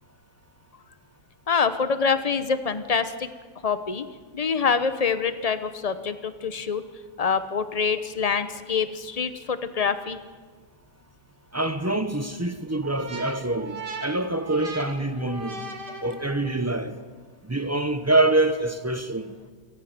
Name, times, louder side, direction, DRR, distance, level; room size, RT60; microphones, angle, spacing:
voice 1, 1.5-3.3 3.6-4.1 4.3-6.8 7.2-10.2, left 5 dB, 30° left, 0.8 m, -25 dB
voice 2, 11.5-15.7 16.0-17.0 17.4-19.3, right 2 dB, 25° right, 0.3 m, -25 dB
sound 1, 12.8-16.7, right 3 dB, 85° right, 2.7 m, -38 dB
28.5 x 10.5 x 9.5 m
omnidirectional pair, 1.8 m